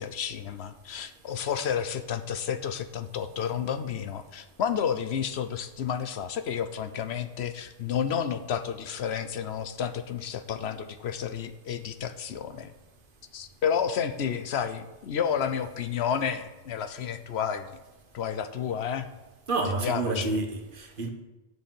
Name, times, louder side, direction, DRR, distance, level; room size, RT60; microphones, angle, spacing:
voice 1, 0.0-12.7 13.3-17.8 18.1-19.1 19.8-20.4, left 8 dB, 85° left, 11 dB, 1.0 m, -31 dB
voice 2, 19.5-21.1, right 3 dB, 55° right, 3 dB, 1.4 m, -29 dB
7.9 x 7.1 x 7.6 m, 1.1 s
omnidirectional pair, 1.1 m